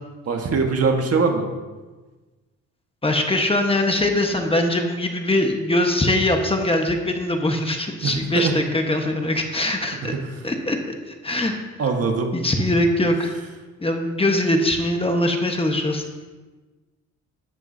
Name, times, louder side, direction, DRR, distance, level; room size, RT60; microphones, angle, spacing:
voice 1, 0.3-1.5 8.0-8.6 10.1-10.3 11.8-12.3 12.6-12.7, right 4 dB, 50° right, 3 dB, 1.6 m, -22 dB
voice 2, 3.0-10.1 10.4-10.8 11.1-11.5 12.3-13.4 13.8-16.0, left 1 dB, 20° left, 3 dB, 1.3 m, -22 dB
12.0 x 10.5 x 2.8 m, 1.3 s
cardioid pair, 90°, 30 cm